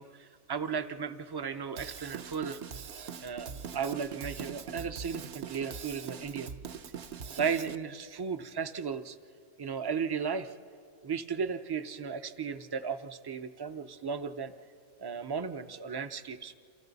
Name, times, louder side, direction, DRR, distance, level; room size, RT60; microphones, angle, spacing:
voice 1, 0.0-2.6 3.2-6.5 7.4-9.2 9.6-10.5 11.0-14.5 15.0-16.5, right 6 dB, 35° right, 10 dB, 0.4 m, -35 dB
Drum kit / Drum, 1.8-7.8, right 7 dB, 65° right, 0.9 m, -42 dB
28.5 x 27.5 x 4.0 m, 2.4 s
omnidirectional pair, 1.2 m